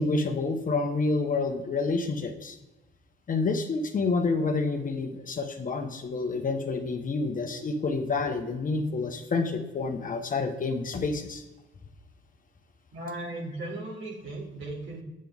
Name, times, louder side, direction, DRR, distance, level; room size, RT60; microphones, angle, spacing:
voice 1, 0.0-2.6 3.3-11.4, left 3 dB, 40° left, 4 dB, 1.0 m, -28 dB
voice 2, 12.9-15.0, right 2 dB, 80° right, -2 dB, 2.6 m, -37 dB
7.5 x 7.5 x 3.5 m, 1.0 s
cardioid pair, 90°, 20 cm